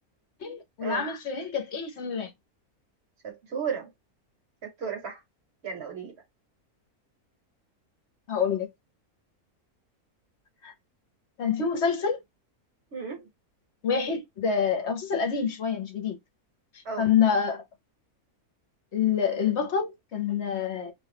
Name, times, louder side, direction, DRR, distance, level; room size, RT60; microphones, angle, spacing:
voice 1, 0.4-2.3 8.3-8.7 10.6-10.7 11.4-12.2 13.8-16.2 17.0-17.6 18.9-20.9, left 7 dB, 55° left, 0.9 m, -27 dB
voice 2, 3.2-3.9 4.6-5.2 5.6-6.1 12.9-13.2 16.8-17.1, right 6 dB, 50° right, 1.1 m, -34 dB
2.6 x 2.3 x 3.4 m
omnidirectional pair, 1.6 m